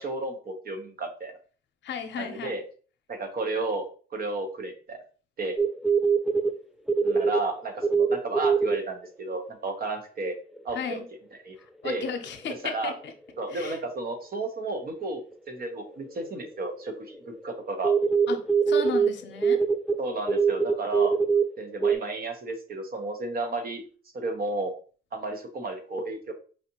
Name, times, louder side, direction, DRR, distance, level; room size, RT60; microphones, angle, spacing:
voice 1, 0.0-1.3 2.2-2.6 3.1-5.0 5.4-5.6 7.0-10.4 10.6-11.0 11.4-11.6 11.8-12.1 12.5-12.9 13.4-17.9 20.0-21.1 21.6-23.8 24.1-24.7 25.1-26.3, right 2 dB, 50° right, 5 dB, 1.0 m, -32 dB
voice 2, 1.8-2.6 10.7-11.1 11.8-13.1 13.5-13.8 18.3-19.6, left 6 dB, 65° left, 6 dB, 0.7 m, -34 dB
sound 1, 5.6-6.5 6.9-7.4 7.8-8.8 10.6-10.7 12.9-13.0 15.9-16.0 16.2-16.9 17.2-17.4 17.8-19.1 19.4-21.5 21.8-22.0, right 5 dB, ahead, 0.4 m, -22 dB
4.9 x 2.8 x 2.9 m, 0.40 s
cardioid pair, 90°, 20 cm